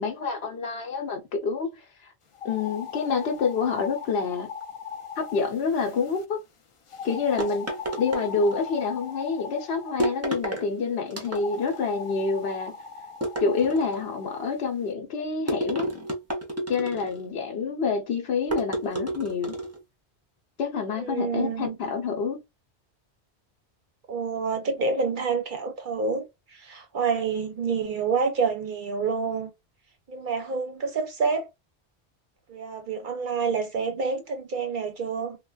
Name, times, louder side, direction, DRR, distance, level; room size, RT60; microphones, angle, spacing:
voice 1, 0.0-2.1 2.4-4.5 5.2-6.4 7.0-7.7 8.0-12.7 13.4-15.9 16.7-19.6 20.6-22.4, left 5 dB, 70° left, 0.9 m, -27 dB
sound 1, 2.3-6.2 6.9-10.2 11.3-14.5, left 7 dB, 50° left, 0.4 m, -40 dB
sound 2, 7.4-8.8 10.0-10.7 11.1-11.8 13.2-14.1 15.5-17.3 18.5-19.8, right 1 dB, 20° right, 0.5 m, -31 dB
voice 2, 21.0-21.8 24.1-26.2 26.5-29.5 30.1-31.5 32.5-35.4, right 5 dB, 55° right, 0.7 m, -28 dB
3.2 x 2.2 x 2.2 m
omnidirectional pair, 1.1 m